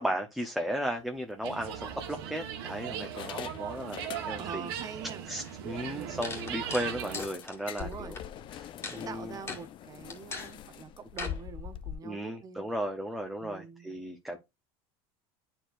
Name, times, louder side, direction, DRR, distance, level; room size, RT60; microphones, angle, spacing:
voice 1, 0.0-4.7 5.3-8.1 8.5-9.4 12.0-14.4, equal, ahead, 0.8 m, -35 dB
sound 1, 1.0-1.2 1.9-2.6 3.0-4.7 5.0-5.1 5.6-5.7 6.0-6.1 7.0-11.9, left 10 dB, 45° left, 0.6 m, -43 dB
sound 2, 1.4-7.2, right 9 dB, 85° right, 1.3 m, -38 dB
voice 2, 4.4-5.2 5.9-6.2 7.8-8.2 8.8-12.7 13.4-14.0, right 6 dB, 30° right, 1.0 m, -44 dB
sound 3, 5.5-5.6 6.2-8.2 8.8-9.0 9.5-9.6 10.1-10.5 11.2-11.4, left 4 dB, 20° left, 1.9 m, -39 dB
9.7 x 4.5 x 2.5 m
supercardioid pair, 120°, 12 cm